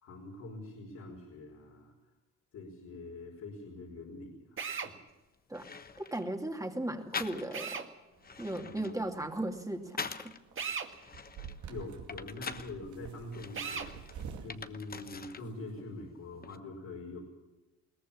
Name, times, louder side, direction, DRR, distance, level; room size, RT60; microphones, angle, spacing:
voice 1, 0.0-1.9 2.5-5.0 8.6-8.9 11.0-11.1 11.7-13.9 14.4-17.2, left 2 dB, 65° left, -2 dB, 5.0 m, -44 dB
Drill, 4.6-4.9 7.5-7.9 10.6-10.9 13.5-13.9, right 6 dB, 40° right, 1.8 m, -36 dB
sound 1, 5.1-5.2 5.5-6.3 7.1-7.8 8.1-10.4 10.9-12.7 13.3-15.5 15.8-16.6, left 5 dB, 30° left, 1.2 m, -43 dB
voice 2, 6.0-7.8 8.4-10.1, right 1 dB, 10° right, 3 dB, 2.6 m, -36 dB
sound 2, 8.1-15.8, right 7 dB, 75° right, 2.5 m, -49 dB
21.5 x 18.0 x 7.2 m, 1.1 s
cardioid pair, 90°, 30 cm